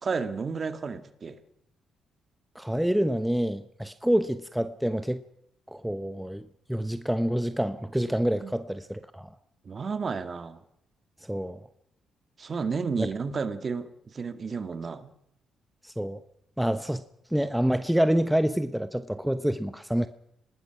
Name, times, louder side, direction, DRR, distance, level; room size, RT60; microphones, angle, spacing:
voice 1, 0.0-1.4 8.4-8.5 9.7-10.6 12.4-15.1, right 5 dB, 40° right, 2.0 m, -32 dB
voice 2, 2.5-5.2 5.7-9.3 11.3-11.6 13.0-13.1 15.8-16.2 16.6-17.0 17.3-20.1, equal, 5° right, 1.0 m, -27 dB
24.5 x 19.5 x 6.0 m
cardioid pair, 90°, 0 cm